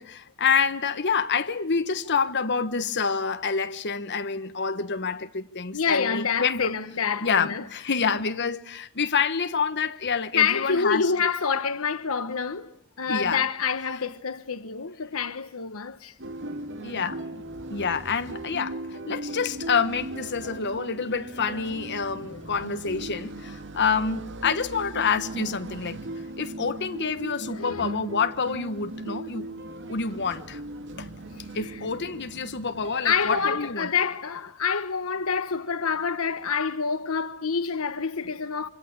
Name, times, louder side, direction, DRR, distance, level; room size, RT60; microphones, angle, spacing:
voice 1, 0.0-6.8 7.2-11.1 13.1-13.4 16.8-17.4 17.7-26.0 26.4-29.5 29.9-30.6 31.0-31.1 31.5-33.9, left 5 dB, 55° left, 1.4 m, -27 dB
voice 2, 5.7-8.0 10.1-16.1 22.2-22.4 27.5-28.0 31.4-31.8 33.0-38.7, left 6 dB, 75° left, 1.1 m, -27 dB
sound 1, 16.2-33.5, right 2 dB, 60° right, 2.3 m, -38 dB
26.0 x 25.0 x 8.7 m
head